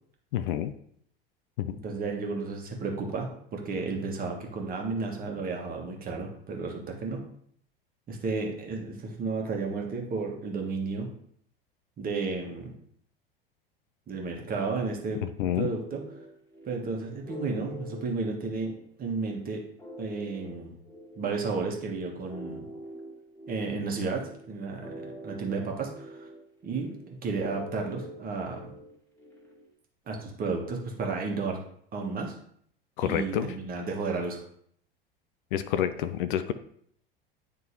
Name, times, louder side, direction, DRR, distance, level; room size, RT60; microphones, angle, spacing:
voice 1, 0.3-0.7 1.6-1.7 15.4-15.7 33.0-33.5 35.5-36.5, left 10 dB, 60° left, 11 dB, 0.5 m, -28 dB
voice 2, 1.8-7.2 8.1-11.1 12.0-12.7 14.1-15.2 15.6-16.0 16.6-19.6 20.0-20.7 21.2-22.6 23.5-26.3 26.6-26.9 27.2-28.7 30.1-31.6 31.9-32.3 33.0-34.4, right 4 dB, 30° right, 1 dB, 1.5 m, -32 dB
sound 1, 15.9-29.7, equal, 5° left, 1.8 m, -45 dB
9.2 x 3.7 x 2.9 m, 0.64 s
figure-of-eight pair, 80°, 29 cm